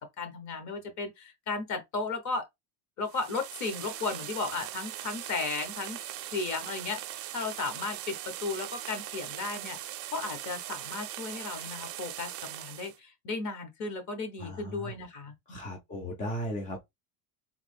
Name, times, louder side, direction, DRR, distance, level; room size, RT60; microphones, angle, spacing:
voice 1, 0.0-2.4 3.0-6.0 6.3-9.8 10.1-15.7, left 4 dB, 35° left, 1.2 m, -35 dB
sound 1, 3.0-13.0, right 13 dB, 40° right, 0.5 m, -40 dB
voice 2, 14.4-14.9 15.5-16.8, equal, 15° left, 0.4 m, -36 dB
3.5 x 2.9 x 3.4 m
cardioid pair, 150°, 49 cm